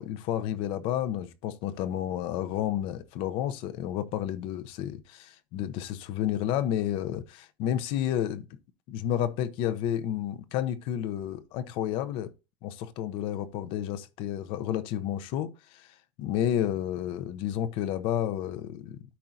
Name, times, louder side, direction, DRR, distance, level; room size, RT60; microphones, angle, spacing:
voice 1, 0.0-8.5 8.9-12.3 12.6-15.9 16.2-19.0, left 11 dB, 50° left, 0.8 m, -31 dB
13.0 x 4.6 x 2.7 m
supercardioid pair, 150°, 11 cm